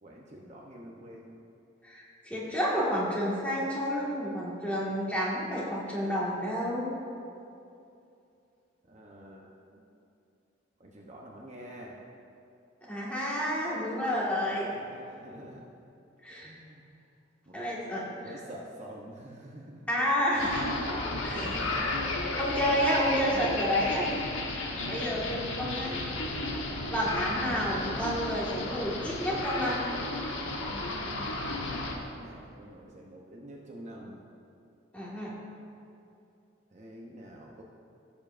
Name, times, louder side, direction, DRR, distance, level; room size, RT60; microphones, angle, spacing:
voice 1, 0.0-1.3 8.9-9.8 10.8-12.0 14.5-15.7 16.4-16.8 17.5-17.6 18.2-19.9 21.1-21.9 22.2-22.3 24.8-25.2 32.0-34.2 36.7-37.6, equal, 35° right, -2 dB, 0.8 m, -47 dB
voice 2, 1.8-6.9 12.8-14.7 16.2-16.5 17.5-18.4 19.9-20.7 21.0-21.5 22.4-24.1 24.5-25.9 26.9-29.8 34.9-35.3, equal, 5° left, -6 dB, 1.7 m, -30 dB
sound 1, 20.4-32.0, left 2 dB, 85° left, 1.2 m, -33 dB
16.0 x 7.1 x 2.5 m, 2.6 s
head